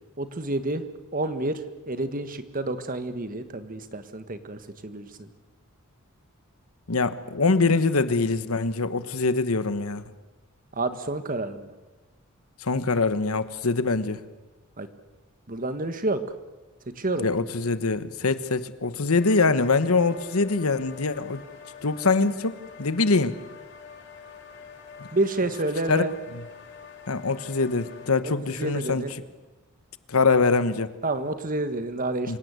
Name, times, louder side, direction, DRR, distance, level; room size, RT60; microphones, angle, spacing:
voice 1, 0.2-0.8 1.1-5.3 10.7-11.7 14.8-14.9 15.5-16.2 17.0-17.3 25.1-26.1 28.6-29.1 31.0-32.4, right 2 dB, 40° right, 10 dB, 1.5 m, -29 dB
voice 2, 6.9-10.0 12.6-14.2 17.2-21.4 21.8-23.3 25.9-26.1 27.1-29.0 30.1-30.9 32.3-32.4, left 3 dB, 85° left, 12 dB, 1.2 m, -23 dB
sound 1, 19.2-28.1, left 6 dB, 55° left, 3.7 m, -46 dB
26.5 x 17.5 x 8.2 m, 1.2 s
head